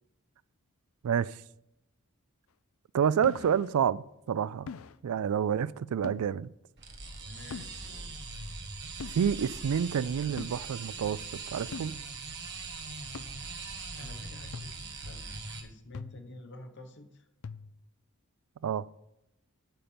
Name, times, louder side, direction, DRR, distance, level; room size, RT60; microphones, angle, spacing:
voice 1, 1.0-1.4 2.9-4.7 5.0-6.5 9.1-12.0 18.6-18.8, right 8 dB, 80° right, 0.3 m, -29 dB
sound 1, 3.2-3.7 4.7-5.0 6.0-6.3 7.5-7.8 9.0-9.2 10.4-10.6 11.7-12.0 13.1-13.3 14.5-14.9 15.9-16.3 17.4-17.8, left 5 dB, 70° left, 0.5 m, -42 dB
sound 2, 6.8-15.6, right 3 dB, 50° right, 1.3 m, -41 dB
voice 2, 7.2-8.1 14.0-15.3 15.6-17.3, left 1 dB, 55° left, 1.1 m, -49 dB
9.2 x 5.8 x 6.9 m
head